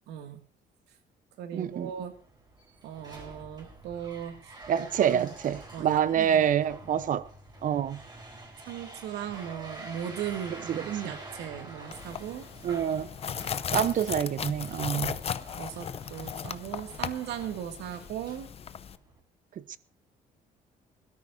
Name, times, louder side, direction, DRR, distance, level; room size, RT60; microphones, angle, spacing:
voice 1, 0.1-0.4 1.4-2.1 2.8-5.3 5.7-6.6 8.6-12.5 15.0-15.1 15.6-18.5, right 10 dB, 85° right, 2.2 m, -38 dB
voice 2, 1.5-1.9 4.7-7.3 7.6-8.0 10.7-11.1 12.6-13.1 13.7-15.2 19.7-19.8, right 9 dB, 50° right, 0.9 m, -27 dB
sound 1, 1.7-19.2, right 2 dB, 25° right, 4.0 m, -47 dB
sound 2, 11.9-19.0, left 8 dB, 35° left, 0.7 m, -36 dB
21.5 x 13.0 x 2.7 m
cardioid pair, 110°, 17 cm